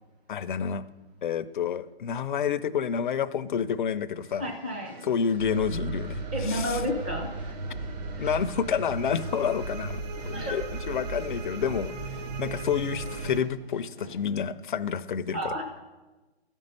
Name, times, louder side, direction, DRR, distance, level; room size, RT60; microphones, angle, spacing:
voice 1, 0.3-0.8 1.2-4.4 5.0-6.8 8.2-15.5, left 7 dB, 50° left, 12 dB, 0.5 m, -29 dB
sound 1, 4.2-14.2, equal, 70° right, 3.9 m, -50 dB
voice 2, 4.4-4.9 6.3-7.6 8.2-8.4 10.3-10.6 15.3-15.8, equal, 10° right, 1 dB, 0.4 m, -32 dB
sound 2, 5.4-13.4, right 3 dB, 40° right, 0.9 m, -35 dB
13.0 x 5.4 x 5.4 m, 1.2 s
hypercardioid pair, 155°, 32 cm